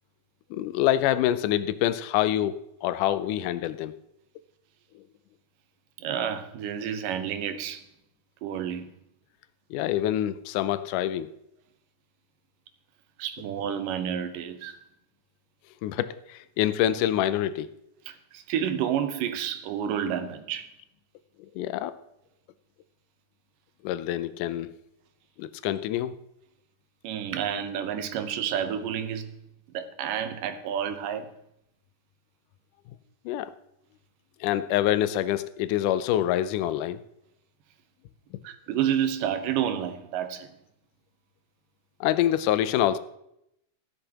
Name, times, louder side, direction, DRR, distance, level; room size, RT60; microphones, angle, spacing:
voice 1, 0.5-3.9 9.7-11.3 15.8-17.7 21.6-22.0 23.8-24.7 25.4-26.2 33.3-33.5 34.4-37.0 42.0-43.0, left 12 dB, 85° left, 14 dB, 2.1 m, -26 dB
voice 2, 6.0-7.8 8.4-8.9 13.2-14.8 18.1-20.7 27.0-29.4 29.7-31.3 38.4-40.5, right 9 dB, 90° right, 9 dB, 2.5 m, -30 dB
15.5 x 11.5 x 2.9 m, 0.80 s
omnidirectional pair, 3.7 m